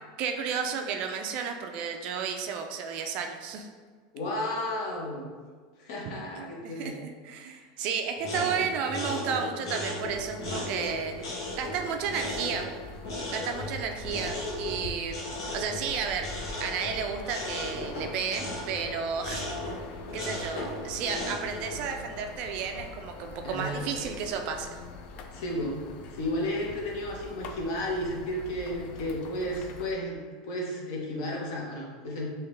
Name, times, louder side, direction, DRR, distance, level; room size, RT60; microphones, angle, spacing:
voice 1, 0.2-3.7 6.6-11.1 11.6-12.7 13.3-15.2 15.5-16.3 16.6-19.8 20.1-24.8, right 6 dB, 40° right, 5 dB, 0.3 m, -32 dB
voice 2, 4.1-5.3 5.8-7.0 7.4-7.5 23.4-23.8 25.3-32.3, left 1 dB, 60° left, -2 dB, 0.9 m, -33 dB
sound 1, 8.2-21.8, left 1 dB, 85° left, 1.2 m, -36 dB
sound 2, 10.0-29.9, left 4 dB, 40° left, 0.3 m, -44 dB
3.5 x 2.8 x 3.1 m, 1.5 s
supercardioid pair, 160°, 3 cm